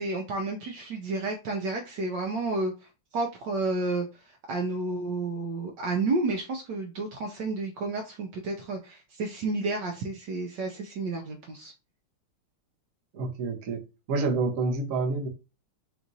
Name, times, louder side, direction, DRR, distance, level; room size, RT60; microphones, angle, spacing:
voice 1, 0.0-2.7 3.1-11.7, right 3 dB, 65° right, 1.2 m, -31 dB
voice 2, 13.1-13.8 14.1-15.3, right 3 dB, 50° right, 1.1 m, -28 dB
4.5 x 2.5 x 4.0 m
omnidirectional pair, 2.3 m